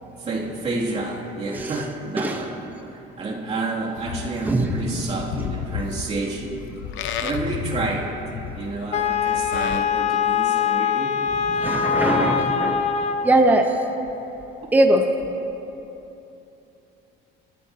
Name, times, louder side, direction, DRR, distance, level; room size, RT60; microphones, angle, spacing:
voice 1, 0.0-2.7 2.9-8.3 8.5-11.1, right 2 dB, 30° right, -4 dB, 2.6 m, -30 dB
voice 2, 1.5-1.8 2.2-2.4 4.4-5.0 11.5-13.0 13.2-13.8 14.7-15.1, right 1 dB, 10° right, 3 dB, 0.9 m, -21 dB
Livestock farm animals working animals, 4.0-9.9, left 8 dB, 70° left, 0.8 m, -32 dB
Wind instrument woodwind instrument, 8.9-13.5, left 7 dB, 35° left, 0.6 m, -23 dB
23.5 x 13.0 x 2.9 m, 3.0 s
cardioid pair, 130°, 20 cm